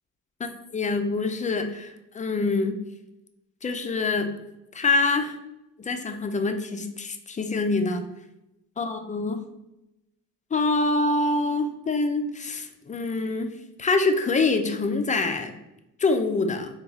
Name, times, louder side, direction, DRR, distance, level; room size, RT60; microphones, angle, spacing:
voice 1, 0.4-2.8 3.6-4.3 4.7-5.4 5.8-8.0 8.8-9.4 10.5-13.5 13.8-15.5 16.0-16.7, left 3 dB, 25° left, 6 dB, 0.4 m, -25 dB
2.9 x 2.3 x 3.9 m, 0.92 s
cardioid pair, 90°, 30 cm